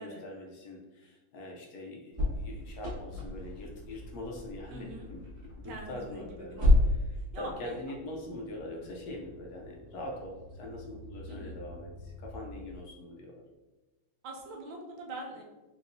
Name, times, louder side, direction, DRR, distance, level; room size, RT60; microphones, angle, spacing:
voice 1, 0.0-5.2 5.6-6.6 7.0-13.4, left 1 dB, 65° left, -1 dB, 1.0 m, -43 dB
sound 1, 2.1-12.8, left 1 dB, 25° right, 1.1 m, -33 dB
voice 2, 4.7-5.1 5.6-6.9 7.3-7.8 11.3-11.5 14.2-15.4, right 2 dB, 70° right, 0 dB, 1.2 m, -43 dB
4.6 x 2.9 x 2.6 m, 1.1 s
omnidirectional pair, 2.2 m